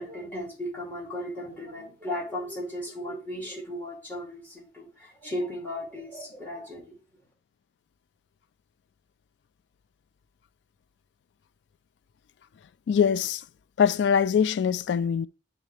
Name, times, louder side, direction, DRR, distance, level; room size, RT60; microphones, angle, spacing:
voice 1, 0.0-6.9, left 1 dB, 10° left, 2.1 m, -36 dB
voice 2, 12.9-13.4 13.8-15.3, left 7 dB, 80° left, 0.3 m, -23 dB
9.2 x 3.7 x 3.2 m
head